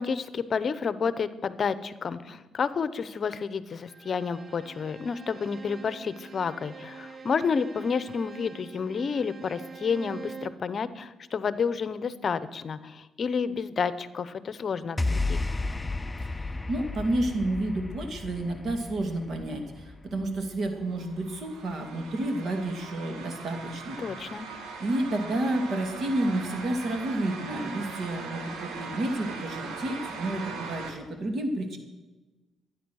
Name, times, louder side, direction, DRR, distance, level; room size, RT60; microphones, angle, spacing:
voice 1, 0.0-15.4 24.0-24.5, left 5 dB, 45° left, 15 dB, 0.7 m, -30 dB
Bowed string instrument, 3.9-10.7, right 5 dB, 35° right, 0.8 m, -45 dB
sound 1, 15.0-21.4, left 2 dB, 20° left, 0.4 m, -33 dB
voice 2, 16.7-24.0 24.8-31.8, right 1 dB, 55° right, 5 dB, 2.3 m, -30 dB
sound 2, 20.8-30.9, right 4 dB, 85° right, 1.9 m, -40 dB
13.0 x 10.0 x 6.3 m, 1.2 s
cardioid pair, 90°, 0 cm